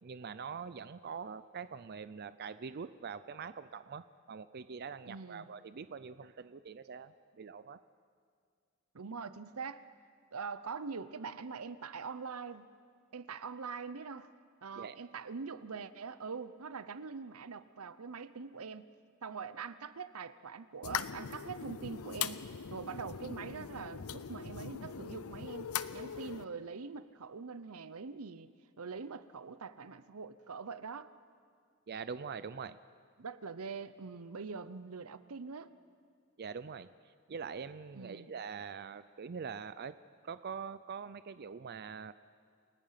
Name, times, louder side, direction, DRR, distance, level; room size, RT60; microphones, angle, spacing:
voice 1, 0.0-7.8 14.8-15.0 31.9-32.8 36.4-36.9 37.3-40.0 40.2-42.1, right 6 dB, 50° right, 14 dB, 0.5 m, -44 dB
voice 2, 5.0-5.5 8.9-9.8 10.3-12.7 13.1-14.3 14.6-18.9 19.2-22.4 22.7-31.1 33.2-35.7 37.9-38.3, right 5 dB, 90° right, 14 dB, 0.8 m, -43 dB
sound 1, 20.8-26.4, left 7 dB, 90° left, 0.7 m, -40 dB
28.5 x 19.0 x 5.8 m, 2.2 s
head